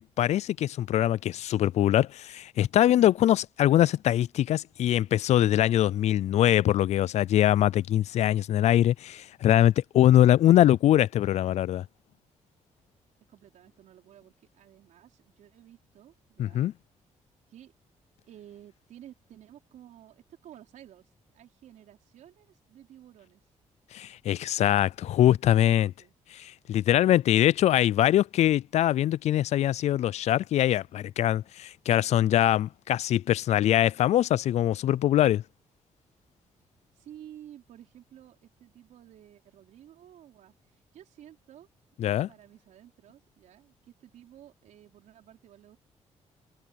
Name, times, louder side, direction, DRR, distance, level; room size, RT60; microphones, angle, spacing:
voice 1, 0.0-11.9 16.4-16.7 23.9-25.9 26.3-35.4 42.0-42.3, left 12 dB, 65° left, 0.4 m, -23 dB
voice 2, 13.3-16.6 17.5-17.7 18.3-23.4 25.1-26.2 36.9-41.7 42.3-45.8, right 11 dB, 85° right, 4.8 m, -52 dB
cardioid pair, 120°, 12 cm